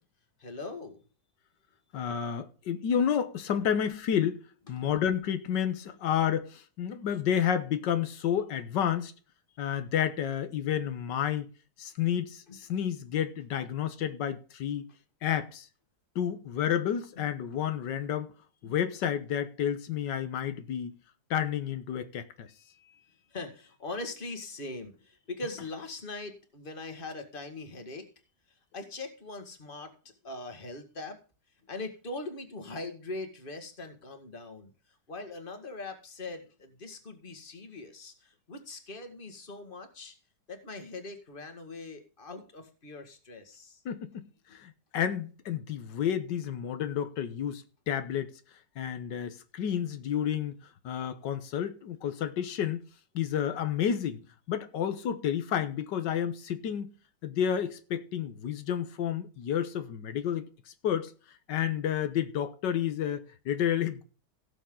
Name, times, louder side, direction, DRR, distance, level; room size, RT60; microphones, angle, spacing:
voice 1, 0.4-1.0 4.8-4.9 5.9-6.0 12.5-12.6 17.2-17.3 18.6-18.7 22.6-28.1 28.5-31.2 31.7-40.2 40.5-43.8 44.5-44.6 45.9-46.0, left 2 dB, 30° left, 1.9 m, -42 dB
voice 2, 1.9-4.4 4.7-9.1 9.6-11.5 11.8-14.9 15.2-15.7 16.1-18.3 18.6-20.9 21.3-22.5 43.8-44.3 44.5-48.3 48.8-50.6 50.8-52.8 53.1-54.2 54.5-56.9 57.2-60.5 60.8-61.1 61.5-64.0, left 9 dB, 85° left, 1.7 m, -30 dB
17.0 x 7.0 x 3.8 m
omnidirectional pair, 1.8 m